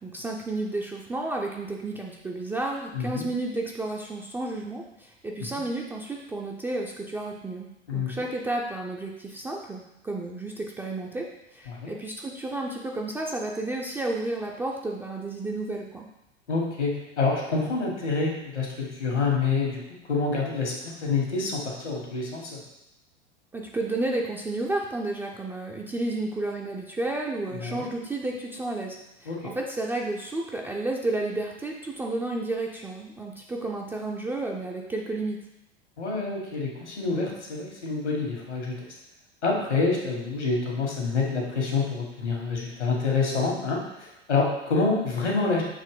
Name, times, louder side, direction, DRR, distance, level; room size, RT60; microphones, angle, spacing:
voice 1, 0.0-16.1 23.5-35.4, right 2 dB, 5° right, -1 dB, 0.3 m, -32 dB
voice 2, 2.9-3.3 7.9-8.1 11.7-11.9 16.5-19.8 20.1-22.6 27.5-27.9 29.3-29.5 36.0-38.8 39.4-45.6, left 4 dB, 80° left, -1 dB, 1.8 m, -27 dB
6.7 x 3.1 x 4.9 m, 0.88 s
figure-of-eight pair, 85°, 34 cm